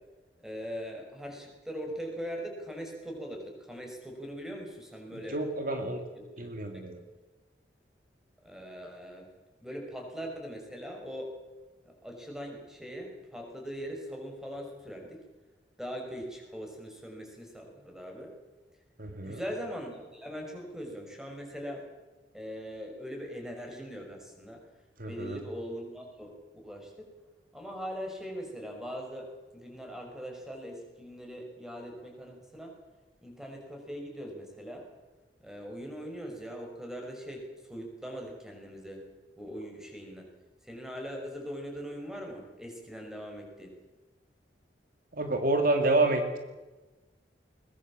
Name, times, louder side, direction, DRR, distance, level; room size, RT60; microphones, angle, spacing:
voice 1, 0.4-5.4 6.1-6.5 8.4-9.3 9.6-11.4 11.8-15.2 15.8-18.3 19.2-21.9 22.3-24.6 25.1-26.3 26.6-26.9 27.5-32.7 33.2-34.9 35.4-39.0 39.4-40.3 40.6-43.7, equal, 5° right, 2 dB, 5.7 m, -41 dB
voice 2, 5.3-6.0 6.4-7.0 19.0-19.4 25.0-25.4 45.1-46.4, right 2 dB, 50° right, 5 dB, 2.3 m, -28 dB
21.5 x 21.0 x 7.4 m, 1.2 s
head